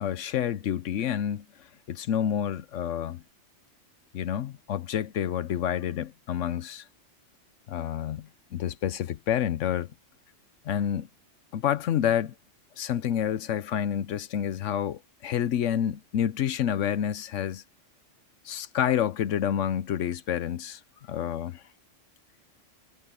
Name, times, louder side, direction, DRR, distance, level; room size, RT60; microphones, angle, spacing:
voice 1, 0.0-3.2 4.1-6.8 7.7-9.9 10.6-11.1 11.5-12.3 12.8-17.6 18.4-21.6, left 9 dB, 80° left, 1.1 m, -29 dB
omnidirectional pair, 1.2 m